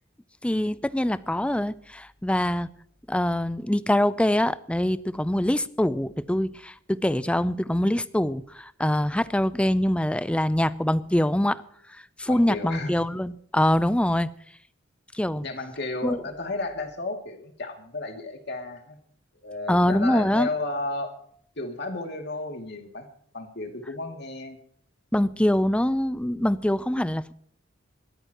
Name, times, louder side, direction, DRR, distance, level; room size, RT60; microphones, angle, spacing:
voice 1, 0.4-2.7 3.1-11.6 12.2-14.3 15.1-15.5 16.0-16.2 19.7-20.5 25.1-27.4, left 1 dB, 5° left, 0.5 m, -24 dB
voice 2, 12.3-13.0 15.4-19.0 19.4-21.1 21.6-23.1 23.3-24.6, left 2 dB, 60° left, 2.5 m, -33 dB
22.0 x 14.0 x 3.0 m
head